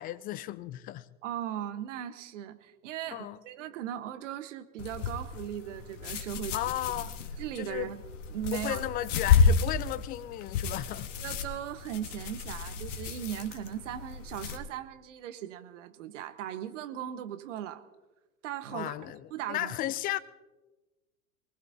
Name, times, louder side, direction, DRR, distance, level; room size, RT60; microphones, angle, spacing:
voice 1, 0.0-1.1 3.1-3.4 6.5-7.1 7.6-7.9 8.5-11.1 18.7-20.2, left 14 dB, 20° left, 0.5 m, -34 dB
voice 2, 1.2-6.6 6.9-7.1 7.4-8.0 8.3-8.8 11.2-17.8 18.4-18.9 19.3-19.7, right 10 dB, 55° right, 1.4 m, -38 dB
sound 1, 4.8-14.6, left 5 dB, 55° left, 1.7 m, -31 dB
25.0 x 19.5 x 2.8 m
figure-of-eight pair, 90°, 44 cm